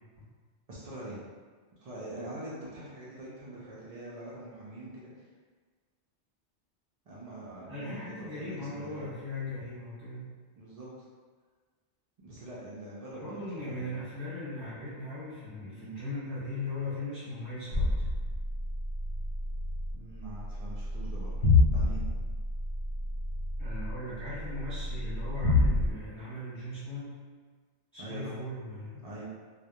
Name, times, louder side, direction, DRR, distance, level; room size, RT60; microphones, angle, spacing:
voice 1, 0.7-1.3 1.8-5.3 7.1-9.1 10.6-11.1 12.2-13.9 15.7-16.0 19.9-21.4 21.7-22.1 28.0-28.4 29.0-29.3, right 1 dB, 65° right, -7 dB, 0.3 m, -44 dB
voice 2, 7.7-10.3 13.1-18.0 23.6-27.2 27.9-29.0, left 2 dB, ahead, -15 dB, 0.8 m, -38 dB
sound 1, 17.7-25.9, left 2 dB, 65° left, 0.7 m, -29 dB
2.2 x 2.0 x 2.8 m, 1.5 s
omnidirectional pair, 1.2 m